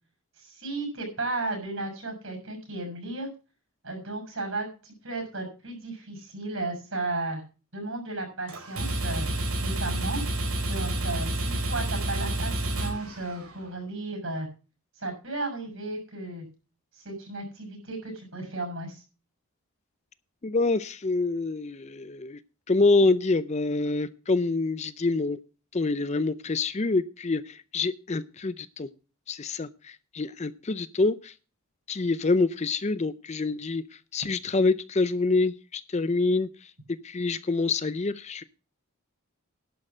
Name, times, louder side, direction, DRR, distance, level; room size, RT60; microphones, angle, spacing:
voice 1, 0.4-3.3 3.8-7.4 7.7-9.3 9.6-10.2 10.7-14.5 15.0-16.5 16.9-19.0, right 2 dB, 60° right, 3 dB, 6.6 m, -34 dB
sound 1, 8.5-13.7, right 1 dB, 75° right, 4.4 m, -29 dB
voice 2, 20.4-22.4 22.7-25.4 25.7-28.9 29.3-31.3 31.9-33.8 34.1-36.5 36.9-38.4, left 3 dB, 30° left, 15 dB, 0.5 m, -26 dB
11.5 x 6.4 x 7.2 m, 0.34 s
head